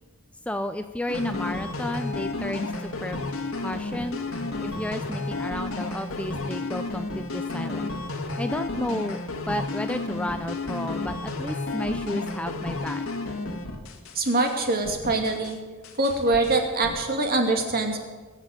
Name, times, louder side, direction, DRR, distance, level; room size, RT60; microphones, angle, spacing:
voice 1, 0.5-2.7 3.0-3.2 3.6-4.2 4.6-7.9 8.4-9.2 9.5-13.0, left 1 dB, 5° left, 9 dB, 0.5 m, -32 dB
sound 1, 1.1-14.6 14.8-15.6 15.8-17.0, left 2 dB, 80° left, 1.9 m, -32 dB
voice 2, 14.2-15.6 16.0-18.0, right 2 dB, 45° right, 3 dB, 2.5 m, -24 dB
21.0 x 7.4 x 9.0 m, 1.4 s
head